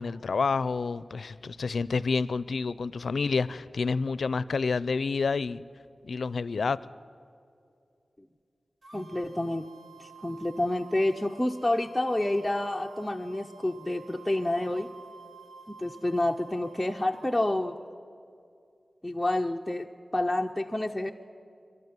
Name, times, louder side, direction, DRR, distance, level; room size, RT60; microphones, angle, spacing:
voice 1, 0.0-5.6 6.0-6.8, left 4 dB, 80° left, 19 dB, 0.5 m, -29 dB
sound 1, 8.8-17.5, right 5 dB, 85° right, 3.2 m, -52 dB
voice 2, 8.9-9.6 10.0-14.9 15.7-17.8 19.0-21.1, left 1 dB, 5° left, 2 dB, 0.7 m, -29 dB
28.5 x 12.5 x 9.5 m, 2.5 s
wide cardioid pair, 105°, 0 cm